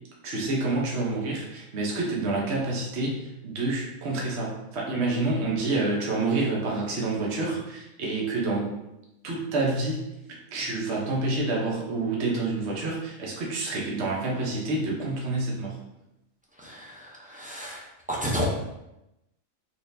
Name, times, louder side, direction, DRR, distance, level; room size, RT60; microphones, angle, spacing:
voice 1, 0.2-8.7 9.2-10.0 10.5-15.7, right 2 dB, 55° right, -3 dB, 1.1 m, -28 dB
voice 2, 16.6-17.8 18.1-18.4, equal, 10° right, -6 dB, 0.5 m, -31 dB
4.3 x 3.4 x 2.7 m, 0.90 s
omnidirectional pair, 1.5 m